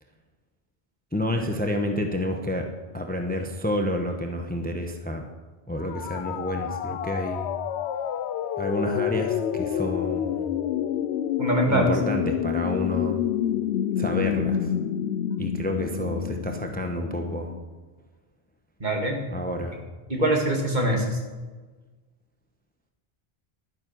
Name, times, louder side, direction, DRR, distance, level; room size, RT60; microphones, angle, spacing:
voice 1, 1.1-2.7 2.9-5.3 5.7-7.5 8.6-10.5 11.7-13.2 14.0-14.7 15.4-17.5 19.3-19.8, left 1 dB, 10° left, 4 dB, 0.9 m, -29 dB
sound 1, 5.8-17.6, left 9 dB, 85° left, 0.9 m, -28 dB
voice 2, 11.4-11.9 18.8-19.2 20.1-21.2, right 1 dB, 45° right, 1 dB, 2.2 m, -23 dB
12.0 x 9.6 x 6.0 m, 1.3 s
omnidirectional pair, 1.1 m